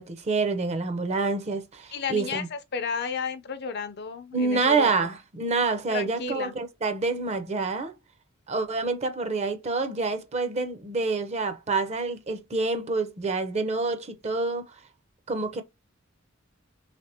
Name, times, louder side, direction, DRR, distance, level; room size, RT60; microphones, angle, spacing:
voice 1, 0.0-2.5 4.3-7.9 8.5-14.7 15.3-15.6, right 3 dB, 35° right, 0.6 m, -27 dB
voice 2, 1.9-4.9 5.9-6.5, left 5 dB, 55° left, 0.6 m, -32 dB
3.3 x 3.3 x 2.8 m
head